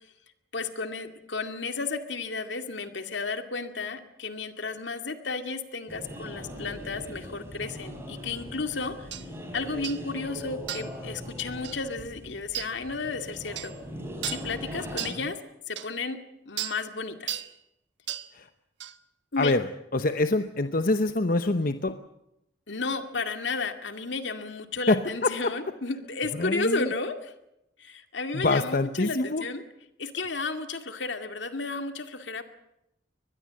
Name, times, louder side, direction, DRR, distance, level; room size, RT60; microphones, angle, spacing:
voice 1, 0.5-9.1 9.5-13.7 14.3-15.4 15.7-16.2 16.5-17.3 19.3-19.6 22.7-27.3 27.8-29.6 30.0-32.4, left 3 dB, 70° left, 7 dB, 2.3 m, -33 dB
sound 1, 5.9-15.1, equal, 15° right, 4.8 m, -40 dB
sound 2, 9.1-9.3 9.8-10.0 10.7-11.0 11.6-11.8 12.5-12.7 13.6-13.7 14.2-14.5 15.0-15.2 15.8-15.9 16.6-16.8 17.3-17.5 18.1-18.3 18.8-19.0, right 12 dB, 75° right, 1.2 m, -34 dB
voice 2, 19.9-22.0 24.9-25.5 26.4-26.9 28.3-29.5, left 2 dB, 50° left, 9 dB, 0.9 m, -25 dB
23.5 x 20.0 x 7.6 m, 0.84 s
head